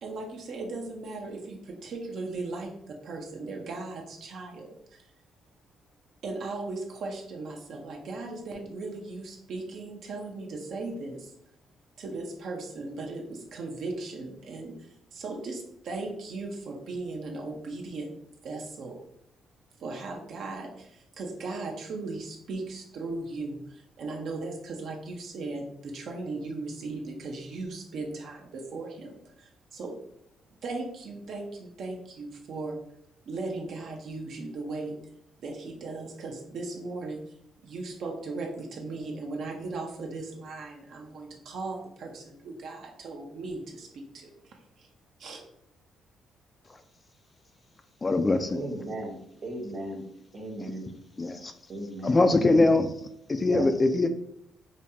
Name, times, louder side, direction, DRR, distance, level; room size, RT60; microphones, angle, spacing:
voice 1, 0.0-5.1 6.2-11.3 12.0-18.1 18.4-19.1 19.8-30.0 30.6-32.8 33.3-35.0 35.4-37.4 37.6-44.9 45.2-45.4, right 3 dB, 70° right, 1 dB, 0.7 m, -37 dB
voice 2, 48.0-48.6 51.2-51.5 52.0-52.9 53.3-54.1, left 2 dB, 25° left, 8 dB, 0.3 m, -22 dB
voice 3, 48.5-49.1 49.4-50.0 50.3-50.9 51.7-52.2 53.5-53.6, right 1 dB, 45° right, -1 dB, 1.1 m, -36 dB
5.1 x 2.3 x 2.7 m, 0.72 s
cardioid pair, 90°, 0 cm